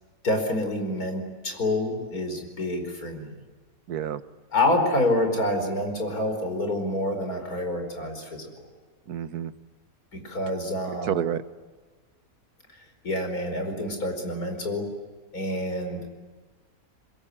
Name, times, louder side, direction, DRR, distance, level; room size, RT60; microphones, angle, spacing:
voice 1, 0.2-3.3 4.5-8.5 10.1-11.2 13.0-14.8 15.3-16.0, left 1 dB, 70° left, 5 dB, 5.3 m, -27 dB
voice 2, 3.9-4.2 9.1-9.5 11.0-11.4, right 9 dB, 85° right, 13 dB, 1.6 m, -29 dB
26.0 x 22.0 x 10.0 m, 1.3 s
omnidirectional pair, 1.6 m